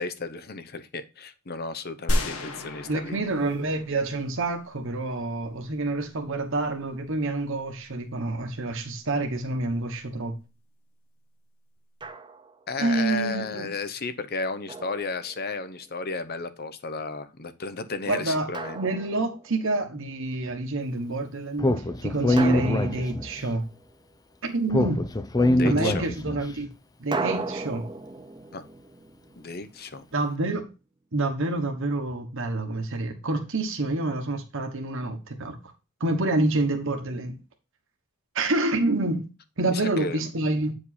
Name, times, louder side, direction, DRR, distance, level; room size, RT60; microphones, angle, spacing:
voice 1, 0.0-3.2 12.7-18.8 25.5-26.0 28.5-28.7 29.4-30.1 39.7-40.3, left 3 dB, 45° left, 0.8 m, -33 dB
sound 1, 2.1-4.4, equal, 70° left, 1.5 m, -30 dB
voice 2, 2.8-10.3 12.8-13.7 18.1-18.5 18.7-23.7 24.4-25.0 25.6-26.7 27.0-27.9 30.1-30.7 31.1-35.6 36.0-37.4 38.3-39.3 39.6-40.7, right 2 dB, 60° right, 1.2 m, -28 dB
Drum, 12.0-12.7 14.7-15.8 18.5-19.7 22.4-24.0 27.1-30.1, right 3 dB, 20° right, 0.6 m, -36 dB
Speech, 21.6-23.4 24.7-26.5, left 1 dB, 15° left, 0.5 m, -23 dB
8.5 x 5.0 x 4.1 m
head